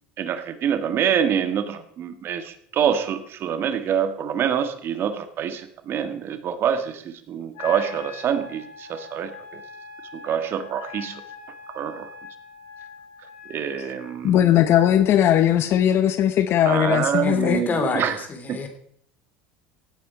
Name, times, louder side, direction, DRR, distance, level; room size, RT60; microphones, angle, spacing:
voice 1, 0.2-9.6 10.2-11.2 11.7-12.1 13.5-14.4 16.6-18.2 18.5-18.6, right 8 dB, 50° right, 10 dB, 1.5 m, -26 dB
Wind instrument woodwind instrument, 7.5-14.1, left 6 dB, 75° left, 3.6 m, -42 dB
voice 2, 14.2-17.6, left 11 dB, 55° left, 12 dB, 0.8 m, -19 dB
voice 3, 17.2-18.7, left 4 dB, 35° left, 7 dB, 3.1 m, -27 dB
16.5 x 8.5 x 4.9 m, 0.63 s
supercardioid pair, 90°, 5 cm